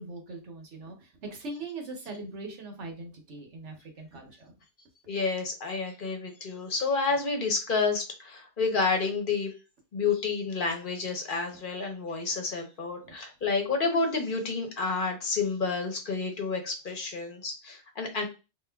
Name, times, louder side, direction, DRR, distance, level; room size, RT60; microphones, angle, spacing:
voice 1, 0.0-4.5, right 2 dB, 75° right, 2 dB, 1.3 m, -41 dB
voice 2, 5.1-9.5 9.9-18.3, left 4 dB, 50° left, 3 dB, 1.0 m, -29 dB
3.6 x 3.0 x 2.2 m, 0.30 s
omnidirectional pair, 1.2 m